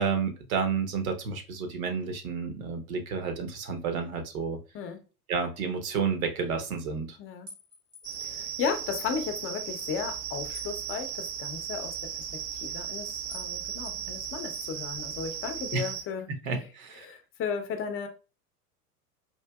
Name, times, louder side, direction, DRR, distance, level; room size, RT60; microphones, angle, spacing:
voice 1, 0.0-4.6 5.3-7.2 15.7-15.9 16.4-17.1, right 5 dB, 60° right, 1.0 m, -30 dB
voice 2, 7.2-7.5 8.2-12.3 12.6-16.3 16.5-16.6 17.0-18.1, left 6 dB, 30° left, 0.7 m, -35 dB
sound 1, 7.5-8.4 10.5-11.5 13.3-13.5 13.8-14.8, left 3 dB, 80° right, 1.7 m, -50 dB
sound 2, 8.0-16.0, right 9 dB, 45° right, 0.6 m, -36 dB
4.4 x 2.6 x 2.3 m
hypercardioid pair, 90°, 46 cm